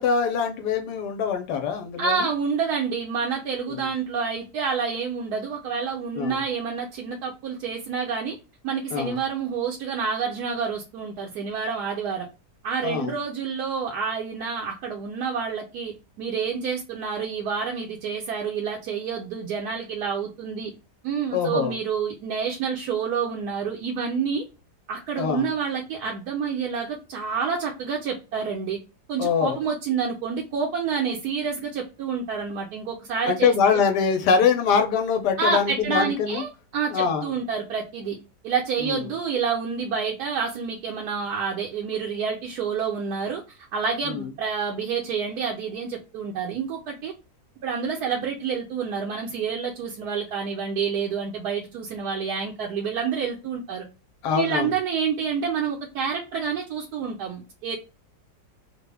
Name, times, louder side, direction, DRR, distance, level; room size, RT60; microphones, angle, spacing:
voice 1, 0.0-2.3 3.7-3.9 6.2-6.4 8.9-9.2 12.8-13.1 21.3-21.8 25.2-25.5 29.2-29.6 33.3-36.4 36.9-37.3 38.8-39.1 44.0-44.3 54.2-54.7, left 6 dB, 80° left, 1.2 m, -23 dB
voice 2, 2.0-8.4 8.6-12.3 12.6-20.7 21.0-24.4 24.9-28.8 29.1-33.8 35.4-38.2 38.4-43.4 43.7-47.1 47.6-53.8 54.3-57.8, right 6 dB, 75° right, 1.2 m, -28 dB
3.5 x 2.2 x 3.3 m
omnidirectional pair, 1.7 m